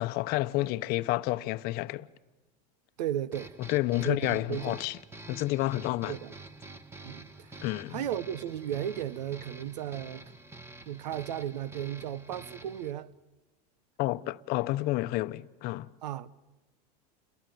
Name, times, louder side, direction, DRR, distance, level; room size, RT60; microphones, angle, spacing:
voice 1, 0.0-2.1 3.6-5.0 5.3-6.2 7.6-8.0 14.0-15.9, left 18 dB, 50° left, 0.8 m, -30 dB
voice 2, 3.0-3.5 4.0-4.8 6.1-6.3 7.0-7.6 7.9-10.3 10.9-13.1 16.0-16.3, right 11 dB, 90° right, 1.0 m, -35 dB
sound 1, 3.3-12.9, right 2 dB, 10° right, 1.3 m, -48 dB
29.5 x 22.0 x 9.3 m
supercardioid pair, 130°, 21 cm